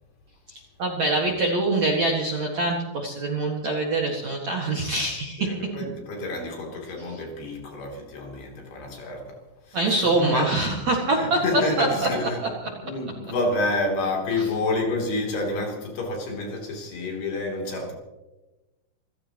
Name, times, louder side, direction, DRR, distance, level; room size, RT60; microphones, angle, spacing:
voice 1, 0.5-5.5 9.7-12.1 14.3-14.5, right 2 dB, 55° right, -1 dB, 2.1 m, -24 dB
voice 2, 5.4-9.4 9.7-10.5 11.1-12.4 12.8-17.9, left 2 dB, 55° left, 1 dB, 4.8 m, -29 dB
27.0 x 16.0 x 3.0 m, 1.1 s
omnidirectional pair, 5.5 m